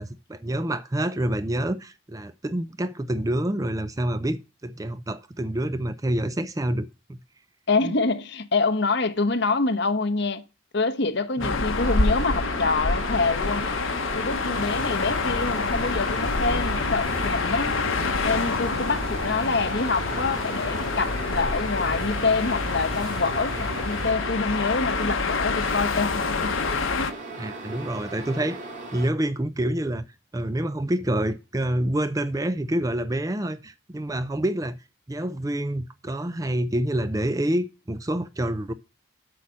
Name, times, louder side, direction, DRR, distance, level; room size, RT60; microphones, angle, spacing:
voice 1, 0.0-7.2 7.8-7.9 11.4-11.6 27.4-28.6 28.9-30.0 30.3-34.8 35.1-38.7, right 1 dB, 15° right, 0.4 m, -27 dB
voice 2, 7.7-10.4 10.7-13.6 14.1-17.7 18.2-26.6 26.9-27.1, left 3 dB, 55° left, 1.1 m, -26 dB
sound 1, 11.4-27.1, left 4 dB, 75° left, 1.1 m, -27 dB
sound 2, 11.8-29.1, right 2 dB, 35° right, 2.4 m, -38 dB
sound 3, 14.5-24.1, right 1 dB, 75° right, 3.0 m, -37 dB
8.4 x 6.4 x 7.1 m
head